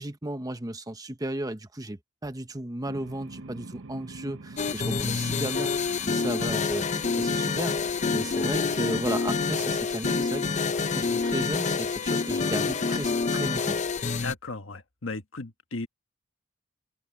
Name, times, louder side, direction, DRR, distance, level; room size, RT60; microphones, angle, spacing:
voice 1, 0.0-10.6 10.9-13.8, right 1 dB, 20° right, 1.0 m, -35 dB
sound 1, 2.8-13.8, right 2 dB, 70° right, 0.9 m, -47 dB
sound 2, 4.6-14.3, left 4 dB, 35° left, 0.6 m, -27 dB
voice 2, 14.2-15.9, left 3 dB, 70° left, 1.4 m, -36 dB
open air
head